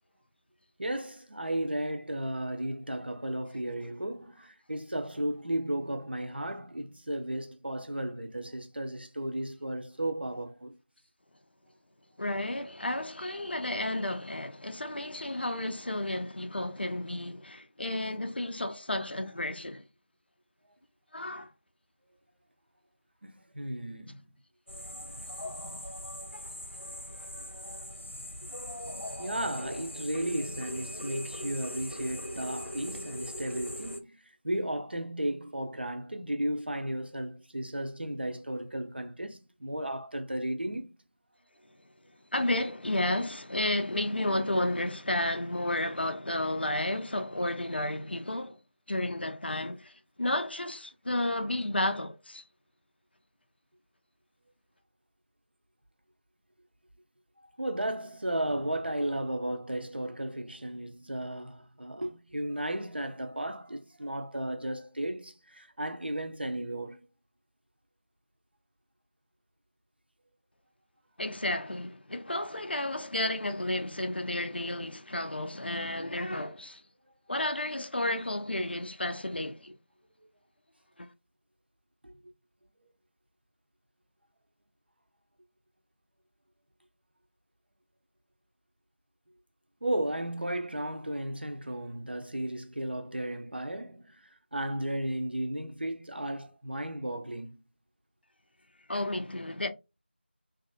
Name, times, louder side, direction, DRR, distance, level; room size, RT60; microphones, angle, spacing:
voice 1, 0.8-10.7 18.0-18.1 23.2-24.2 29.2-34.2 34.4-40.9 57.6-67.0 82.0-82.1 89.8-97.6, right 1 dB, 60° right, 0.6 m, -34 dB
voice 2, 12.2-19.8 21.1-21.5 26.3-27.5 42.3-48.6 48.9-52.4 71.2-76.8 77.3-79.8 81.0-81.1 98.9-99.7, left 1 dB, 60° left, 0.4 m, -32 dB
Temple exterior, 24.7-34.0, left 1 dB, 85° left, 0.8 m, -40 dB
2.9 x 2.4 x 2.2 m
figure-of-eight pair, 175°, 6 cm